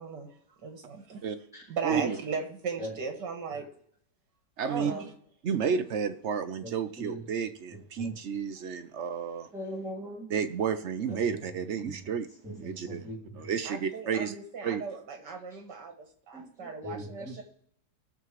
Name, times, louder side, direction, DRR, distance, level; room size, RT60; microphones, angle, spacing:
voice 1, 0.0-1.2 1.7-3.7 4.7-5.1 13.7-17.4, right 5 dB, 75° right, 4 dB, 2.3 m, -37 dB
voice 2, 1.8-2.2 4.6-4.9 5.4-9.5 10.3-12.3 12.5-13.0 13.3-14.4 14.6-14.8, right 7 dB, 55° right, 9 dB, 0.8 m, -31 dB
voice 3, 6.6-7.2 8.0-8.1 9.5-10.3 11.1-11.4 11.8-11.9 12.4-13.2 16.3-17.4, equal, ahead, -7 dB, 3.0 m, -40 dB
19.5 x 7.1 x 3.1 m, 0.64 s
omnidirectional pair, 1.9 m